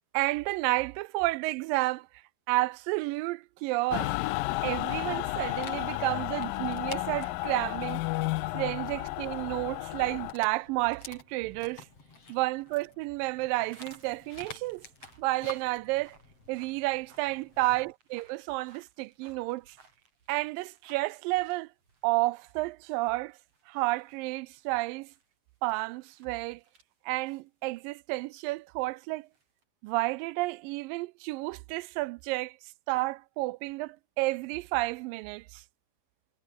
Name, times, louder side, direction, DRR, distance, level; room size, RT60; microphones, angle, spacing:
voice 1, 0.1-2.1 2.5-4.2 4.6-8.0 8.5-11.9 12.3-14.8 15.2-16.2 16.5-19.8 20.3-21.7 22.0-23.4 23.7-25.1 25.6-26.6 27.1-29.3 29.8-32.6 32.9-35.6, right 21 dB, 80° right, 2.1 m, -31 dB
Mechanical fan, 3.9-10.3, left 19 dB, 80° left, 2.3 m, -32 dB
Dog, 5.1-17.9, left 3 dB, 40° left, 7.3 m, -50 dB
sound 1, 13.5-22.7 22.9-26.8 27.1-29.6, right 4 dB, 40° right, 5.9 m, -61 dB
omnidirectional pair, 4.2 m